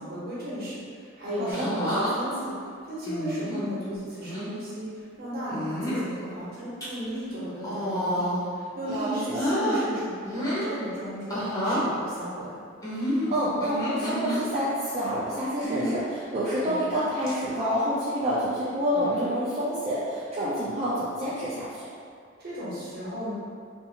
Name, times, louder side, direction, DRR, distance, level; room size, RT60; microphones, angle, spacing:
voice 1, 0.0-2.5 2.9-12.5 22.4-23.3, equal, 50° right, -9 dB, 0.9 m, -35 dB
sound 1, 1.5-2.1 3.1-3.6 4.2-4.5 5.5-6.1 6.6-6.9 7.6-8.5 8.9-9.8 10.2-10.7 11.3-11.9 12.8-14.4 15.6-16.0 16.7-17.0 17.3-17.4 19.0-19.4 20.4-20.7, equal, 20° left, 0.6 m, -29 dB
voice 2, 8.9-9.4 13.0-21.9, equal, 30° right, -10 dB, 0.4 m, -28 dB
2.6 x 2.4 x 2.8 m, 2.2 s
head